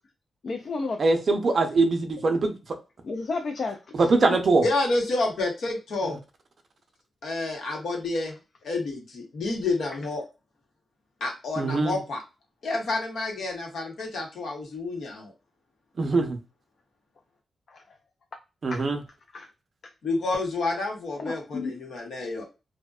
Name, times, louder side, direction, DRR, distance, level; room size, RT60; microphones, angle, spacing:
voice 1, 0.4-1.0 3.0-4.4 17.7-17.8 18.7-18.8 19.3-19.5 21.2-21.7, left 4 dB, 50° left, 0.3 m, -32 dB
voice 2, 1.0-2.5 3.9-4.6 6.0-6.2 11.6-12.0 16.0-16.4 18.6-19.0, right 3 dB, 45° right, 0.5 m, -22 dB
voice 3, 4.6-6.2 7.2-8.3 8.6-10.2 11.2-12.2 12.6-15.3 20.0-22.4, left 2 dB, 85° left, 0.9 m, -29 dB
2.5 x 2.1 x 2.3 m
wide cardioid pair, 145°, 0 cm